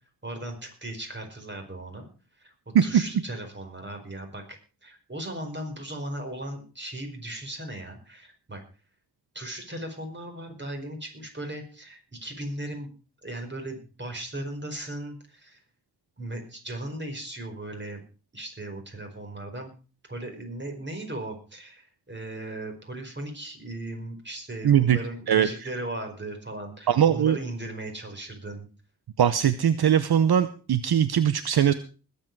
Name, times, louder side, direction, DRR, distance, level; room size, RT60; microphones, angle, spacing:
voice 1, 0.2-2.1 2.4-2.5 2.8-8.6 9.3-12.9 13.2-15.6 16.2-18.0 18.3-19.7 20.1-28.7, right 1 dB, 25° right, 4 dB, 4.9 m, -37 dB
voice 2, 24.6-25.0 25.3-25.7 26.9-27.4 29.2-31.7, right 9 dB, 70° right, 12 dB, 0.9 m, -21 dB
21.0 x 8.4 x 4.7 m, 0.35 s
wide cardioid pair, 85°, 39 cm